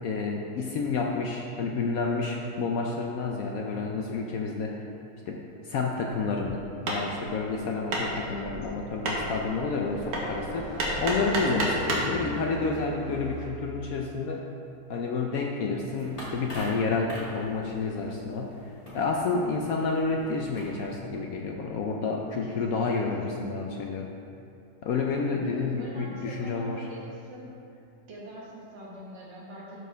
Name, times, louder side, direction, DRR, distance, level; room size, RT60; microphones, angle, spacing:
voice 1, 0.0-4.8 5.3-10.7 11.0-14.4 14.9-18.6 18.9-24.1 24.8-26.9, left 4 dB, 70° left, 1 dB, 0.8 m, -30 dB
Hammer, 6.7-12.2, right 1 dB, 60° right, 1.6 m, -32 dB
voice 2, 8.2-8.5 12.0-12.4 22.4-23.8 25.4-27.5 28.1-29.8, equal, 80° right, -5 dB, 2.2 m, -42 dB
sound 1, 8.3-13.4, right 1 dB, 55° left, 2.1 m, -39 dB
sound 2, 16.0-21.0, equal, 20° left, 2.0 m, -44 dB
12.0 x 4.6 x 3.4 m, 2.5 s
omnidirectional pair, 1.9 m